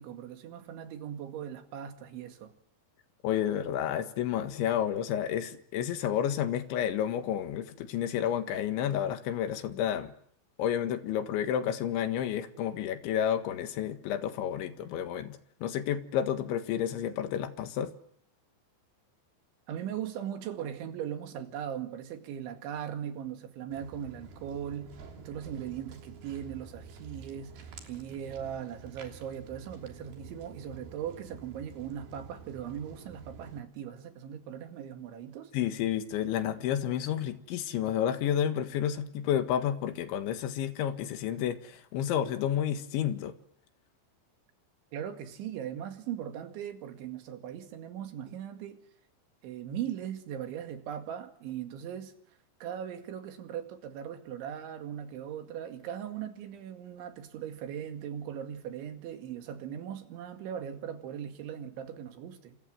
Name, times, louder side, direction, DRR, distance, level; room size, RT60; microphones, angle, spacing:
voice 1, 0.0-2.5 19.7-35.5 44.9-48.8 49.4-52.1 52.6-62.6, right 9 dB, 90° right, 4.5 m, -39 dB
voice 2, 3.2-10.1 10.6-17.9 35.5-43.3, left 10 dB, 90° left, 4.0 m, -30 dB
Walk footsteps, 23.7-33.6, right 5 dB, 60° right, 5.0 m, -49 dB
28.5 x 27.0 x 7.7 m
omnidirectional pair, 5.2 m